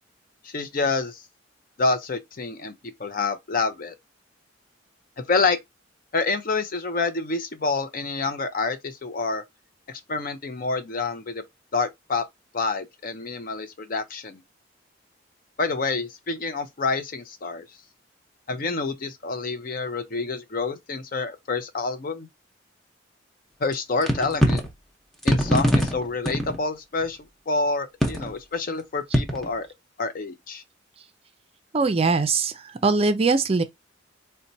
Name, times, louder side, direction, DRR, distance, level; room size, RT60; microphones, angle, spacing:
voice 1, 0.4-1.2 1.8-2.7 3.0-3.9 5.2-5.6 6.1-9.4 9.9-11.4 11.7-12.2 12.5-14.4 15.6-17.7 18.5-22.3 23.6-24.6 25.2-27.2 27.5-29.7 30.0-30.6, left 3 dB, 50° left, 0.5 m, -27 dB
sound 1, 23.7-23.8 24.0-24.7 25.2-26.6 27.0-27.1 28.0-28.3 29.1-29.5, equal, ahead, 0.7 m, -22 dB
voice 2, 31.7-32.5 32.8-33.6, right 4 dB, 30° right, 0.4 m, -21 dB
4.1 x 2.2 x 2.6 m
head